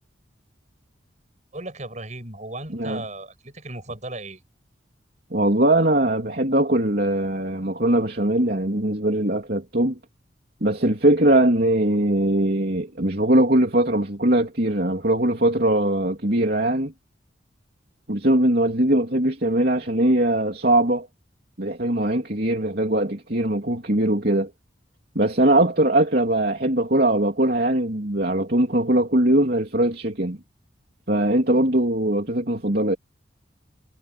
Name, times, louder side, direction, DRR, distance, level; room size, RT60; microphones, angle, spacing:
voice 1, 1.5-4.4, right 2 dB, 40° right, 7.4 m, -36 dB
voice 2, 5.3-10.0 10.6-16.9 18.1-21.1 21.6-24.5 25.1-30.4 31.1-33.0, right 1 dB, 55° right, 3.2 m, -21 dB
head